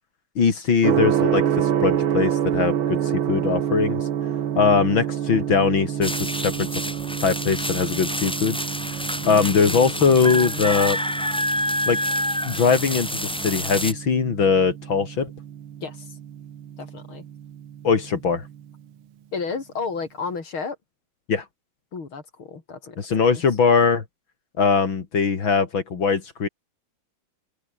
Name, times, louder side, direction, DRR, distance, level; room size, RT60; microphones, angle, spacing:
voice 1, 0.4-4.0 4.5-6.7 7.2-8.6 9.2-11.0 11.9-12.0 12.4-15.3 17.8-18.4 21.3-21.4 23.0-24.0 24.6-26.5, left 5 dB, 70° left, 3.3 m, -21 dB
Gong, 0.8-18.7, right 10 dB, 80° right, 2.2 m, -28 dB
sound 1, 6.0-13.9, equal, 5° left, 1.2 m, -28 dB
voice 2, 9.2-10.8 15.8-16.2 16.8-17.2 19.3-20.8 21.9-23.4, left 4 dB, 90° left, 4.3 m, -33 dB
open air
omnidirectional pair, 2.2 m